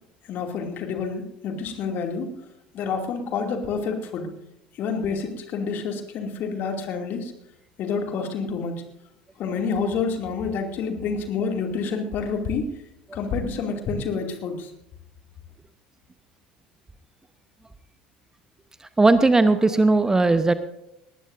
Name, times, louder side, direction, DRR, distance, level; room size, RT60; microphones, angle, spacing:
voice 1, 0.3-2.3 2.7-4.3 4.8-7.3 7.8-8.8 9.4-12.7 13.1-14.7, left 5 dB, 45° left, 4 dB, 2.5 m, -28 dB
voice 2, 19.0-20.5, right 3 dB, 15° right, 12 dB, 0.9 m, -17 dB
19.5 x 18.5 x 2.6 m, 0.83 s
figure-of-eight pair, 65°, 4 cm